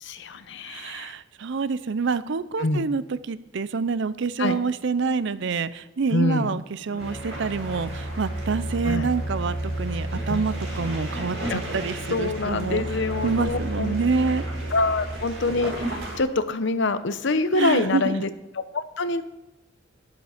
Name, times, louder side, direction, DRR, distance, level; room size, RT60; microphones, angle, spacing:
voice 1, 0.0-1.1 2.6-2.9 4.4-4.6 6.1-6.6 8.8-9.1 10.3-10.4 11.5-11.6 12.1-13.9 14.7-18.3 18.5-19.2, left 3 dB, 65° left, 12 dB, 0.8 m, -25 dB
voice 2, 0.7-12.8 13.2-14.4 17.5-18.1, right 4 dB, 65° right, 16 dB, 0.5 m, -27 dB
Bowed string instrument, 6.9-15.2, left 1 dB, 40° left, 1.1 m, -40 dB
sound 1, 7.0-16.2, right 1 dB, 80° right, 4.9 m, -32 dB
11.0 x 10.5 x 5.0 m, 0.98 s
head